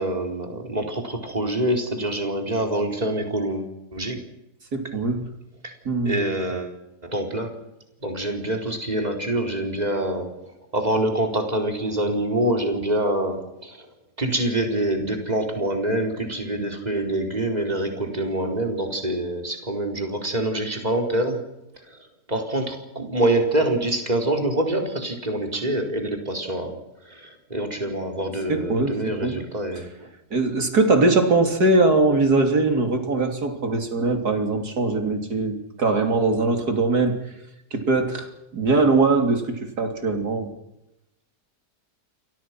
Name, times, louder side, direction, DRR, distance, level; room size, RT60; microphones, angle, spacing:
voice 1, 0.0-4.2 6.0-6.7 7.0-7.5 8.0-10.3 10.7-13.8 14.2-21.4 22.3-26.8 27.1-29.9, right 1 dB, 25° right, 3 dB, 4.5 m, -25 dB
voice 2, 4.7-5.3 5.9-6.3 28.5-29.4 29.8-29.9 30.3-37.2 37.7-40.5, right 3 dB, 70° right, 5 dB, 3.7 m, -21 dB
30.0 x 23.5 x 6.1 m, 0.91 s
omnidirectional pair, 1.7 m